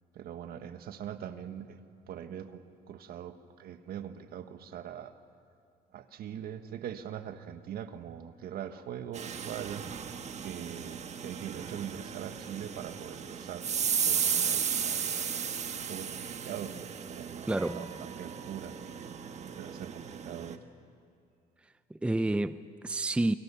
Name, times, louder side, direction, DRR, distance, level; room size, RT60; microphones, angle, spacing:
voice 1, 0.1-1.8 2.1-5.2 5.9-9.9 10.4-13.7 14.0-19.1 19.6-20.6, right 9 dB, 65° right, 1.5 m, -42 dB
sound 1, 9.1-20.6, right 7 dB, 40° right, 1.4 m, -35 dB
voice 2, 17.5-17.9 21.9-23.3, right 2 dB, 5° right, 0.6 m, -29 dB
29.0 x 22.5 x 7.1 m
cardioid pair, 110°, 17 cm